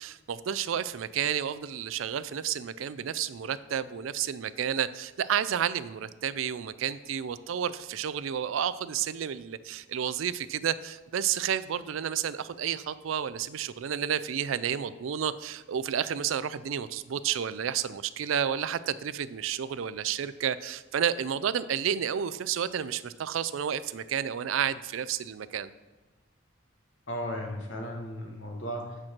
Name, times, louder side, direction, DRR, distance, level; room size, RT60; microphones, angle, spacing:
voice 1, 0.0-25.7, right 8 dB, 80° right, 15 dB, 0.4 m, -31 dB
voice 2, 27.1-29.0, equal, 75° left, 1 dB, 1.7 m, -35 dB
8.9 x 4.5 x 5.9 m, 1.2 s
head